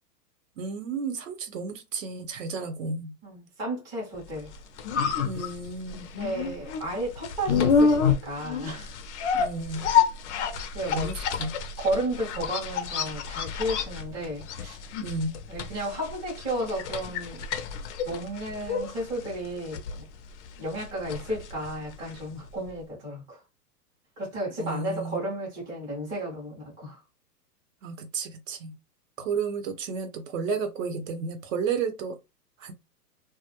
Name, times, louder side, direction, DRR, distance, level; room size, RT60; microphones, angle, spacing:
voice 1, 0.6-3.1 5.2-6.1 9.3-9.9 10.9-11.6 15.0-15.4 24.6-25.3 27.8-28.7 29.2-32.2 32.6-32.7, right 5 dB, 55° right, 0.7 m, -32 dB
voice 2, 3.2-4.5 6.1-9.0 10.4-11.1 11.8-14.8 15.5-17.4 18.0-20.1 20.6-23.4 24.2-27.0, right 1 dB, 10° right, 0.5 m, -33 dB
sound 1, 4.4-22.4 22.7-22.8, left 6 dB, 50° left, 0.5 m, -29 dB
2.3 x 2.1 x 2.8 m
hypercardioid pair, 145°, 48 cm